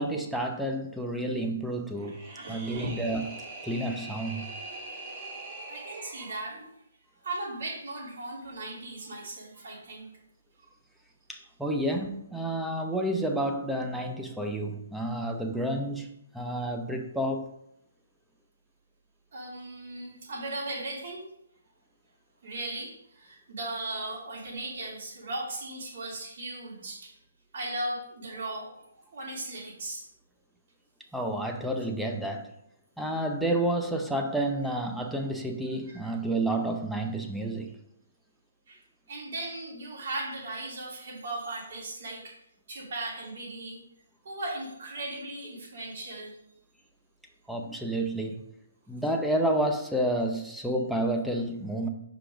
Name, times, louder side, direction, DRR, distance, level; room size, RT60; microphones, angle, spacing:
voice 1, 0.0-2.2 2.5-3.2 3.6-4.4 11.3-17.5 31.1-32.5 33.0-37.7 47.5-48.4 48.9-51.9, right 1 dB, ahead, 2 dB, 0.6 m, -30 dB
sound 1, 2.0-6.4, right 2 dB, 25° right, 1.1 m, -42 dB
voice 2, 2.2-2.9 5.7-6.7 7.2-10.1 19.3-21.3 22.4-27.1 27.5-28.7 29.1-30.0 35.9-36.1 38.7-38.8 39.1-42.3 42.7-43.8 44.2-46.3, right 2 dB, 55° right, -4 dB, 3.1 m, -37 dB
5.8 x 5.0 x 4.9 m, 0.76 s
hypercardioid pair, 160°, 0 cm